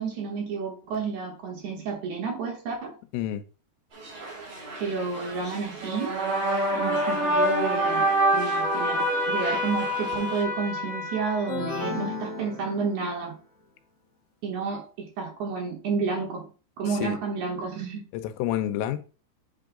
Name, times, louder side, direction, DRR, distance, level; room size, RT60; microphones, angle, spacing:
voice 1, 0.0-3.0 4.8-6.1 6.7-8.0 8.3-13.4 14.4-16.5 16.8-18.0, right 5 dB, 80° right, 1.7 m, -30 dB
sound 1, 3.9-10.4, right 2 dB, 35° right, 2.7 m, -42 dB
sound 2, 5.8-12.2, right 1 dB, 55° right, 3.7 m, -26 dB
sound 3, 11.5-13.3, left 3 dB, 50° left, 1.3 m, -34 dB
voice 2, 18.1-19.0, left 12 dB, 90° left, 2.9 m, -29 dB
8.4 x 3.8 x 3.7 m
omnidirectional pair, 5.0 m